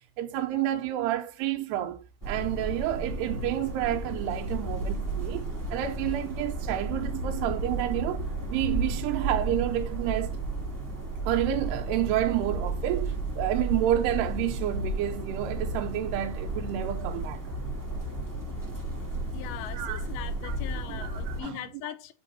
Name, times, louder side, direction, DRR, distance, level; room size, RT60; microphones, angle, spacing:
voice 1, 0.2-10.4 11.2-17.4 19.7-20.0 20.4-20.6 20.9-21.6, right 12 dB, 90° right, 2.9 m, -30 dB
sound 1, 2.2-21.4, right 2 dB, 15° right, 0.6 m, -33 dB
voice 2, 19.3-22.1, left 13 dB, 80° left, 2.5 m, -40 dB
7.7 x 3.6 x 4.2 m
omnidirectional pair, 4.6 m